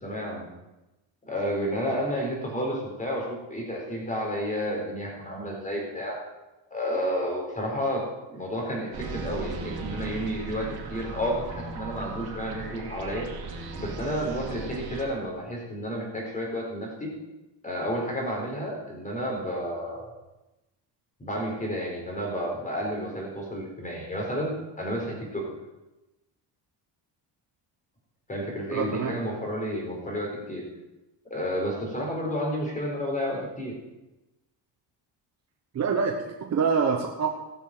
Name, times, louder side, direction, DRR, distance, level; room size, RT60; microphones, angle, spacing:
voice 1, 0.0-0.5 1.3-6.2 6.7-8.0 8.3-13.3 13.7-17.1 17.6-20.1 21.2-25.4 28.3-30.6 31.3-33.7, equal, 15° left, -1 dB, 4.2 m, -31 dB
sound 1, 8.9-15.0, right 4 dB, 60° right, 2.5 m, -37 dB
voice 2, 28.7-29.2 35.7-37.3, right 5 dB, 40° right, 2 dB, 1.2 m, -26 dB
15.0 x 7.0 x 7.5 m, 1.0 s
cardioid pair, 145°, 43 cm